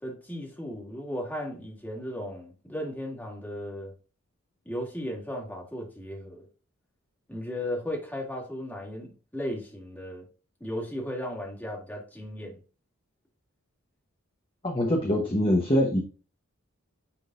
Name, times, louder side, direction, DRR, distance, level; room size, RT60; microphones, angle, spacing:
voice 1, 0.0-3.9 4.7-6.5 7.3-10.3 10.6-12.6, equal, 10° left, 1.9 m, -36 dB
voice 2, 14.6-16.0, equal, 25° left, 1.0 m, -24 dB
9.7 x 3.8 x 2.6 m
head